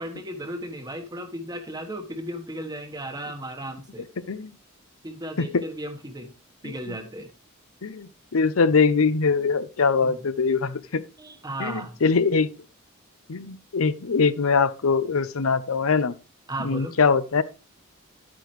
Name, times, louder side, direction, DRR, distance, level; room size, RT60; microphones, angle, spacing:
voice 1, 0.0-4.0 5.0-6.3 6.6-7.3 10.0-10.2 11.2-12.0 16.5-16.9, right 1 dB, 20° right, 1.2 m, -35 dB
voice 2, 6.6-7.0 7.8-11.0 11.6-12.5 13.3-16.1 16.6-17.4, left 5 dB, 90° left, 0.7 m, -22 dB
11.5 x 8.7 x 3.2 m
head